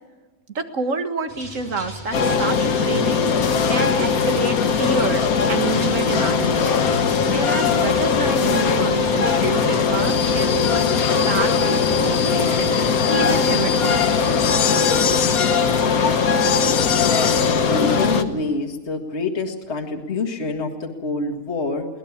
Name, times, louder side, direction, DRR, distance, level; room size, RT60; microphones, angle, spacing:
voice 1, 0.6-3.3 3.7-7.0 7.3-11.0 11.3-12.8 13.1-14.4, right 4 dB, 65° right, 7 dB, 2.0 m, -28 dB
sound 1, 1.3-18.1, equal, 30° right, 5.3 m, -39 dB
sound 2, 2.1-18.2, left 6 dB, 80° left, 1.6 m, -19 dB
voice 2, 17.7-21.9, left 3 dB, 50° left, 3 dB, 2.2 m, -26 dB
22.5 x 18.5 x 7.3 m, 1.3 s
omnidirectional pair, 1.5 m